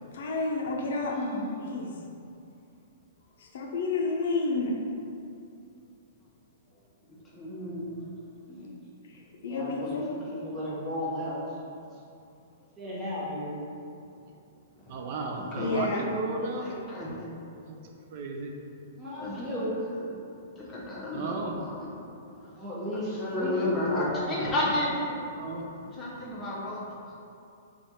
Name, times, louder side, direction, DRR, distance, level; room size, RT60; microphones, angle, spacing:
voice 1, 0.1-1.2 1.6-1.9 3.4-4.7 9.1-10.1 15.6-16.0, left 3 dB, 65° left, -1 dB, 0.5 m, -30 dB
voice 2, 1.0-2.0 8.5-8.7 9.4-11.7 12.8-13.6 19.0-19.7 22.4-24.8, equal, 10° right, -9 dB, 1.0 m, -35 dB
voice 3, 7.3-7.9 9.8-10.0 14.9-15.0 15.3-16.0 16.6-17.5 19.2-20.1 20.6-21.9 22.9-25.2 25.9-27.1, left 1 dB, 15° left, -6 dB, 0.8 m, -33 dB
voice 4, 14.9-16.7 17.7-17.8 18.1-18.5 21.1-21.6 25.3-25.6, right 3 dB, 50° right, 1 dB, 0.3 m, -34 dB
3.2 x 2.4 x 4.1 m, 2.6 s
hypercardioid pair, 145°, 0 cm